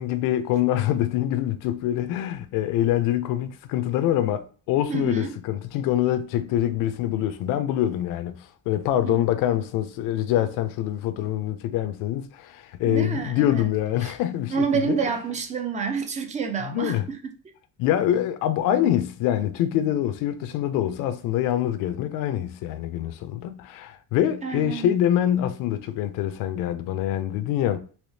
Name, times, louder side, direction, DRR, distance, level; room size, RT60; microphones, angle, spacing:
voice 1, 0.0-15.0 16.7-17.0 17.8-27.8, left 12 dB, 80° left, 0.5 m, -25 dB
voice 2, 4.9-5.3 9.1-9.2 12.8-13.7 14.0-14.1 14.5-17.2 24.4-24.9, right 6 dB, 25° right, 0.4 m, -28 dB
3.4 x 2.7 x 2.6 m
cardioid pair, 155°, 32 cm